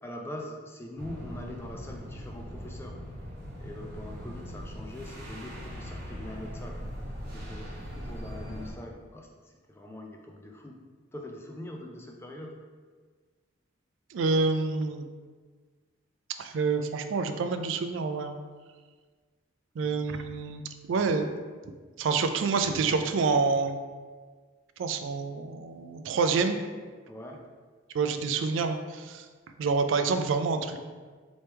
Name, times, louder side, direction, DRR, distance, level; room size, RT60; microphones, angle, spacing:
voice 1, 0.0-3.0 3.6-6.8 7.3-10.8 11.1-12.5 19.8-20.0 27.1-27.4, left 1 dB, 10° left, 1 dB, 0.4 m, -43 dB
sound 1, 1.0-8.7, equal, 50° right, 0.8 m, -40 dB
voice 2, 14.1-15.0 16.4-18.4 19.8-20.6 20.9-21.3 22.0-23.8 24.8-26.6 27.9-29.3 29.6-30.8, right 4 dB, 70° right, 8 dB, 0.3 m, -27 dB
3.3 x 3.0 x 4.3 m, 1.5 s
head